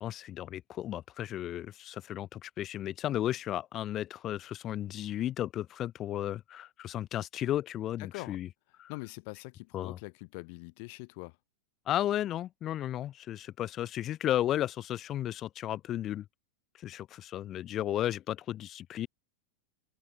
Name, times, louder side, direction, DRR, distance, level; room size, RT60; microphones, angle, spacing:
voice 1, 0.0-8.5 8.8-8.9 9.7-10.0 11.9-16.3 16.8-19.1, left 12 dB, 30° left, 0.4 m, -34 dB
voice 2, 8.0-8.4 8.9-11.4, left 32 dB, 45° left, 2.0 m, -43 dB
figure-of-eight pair, 90°, 0 cm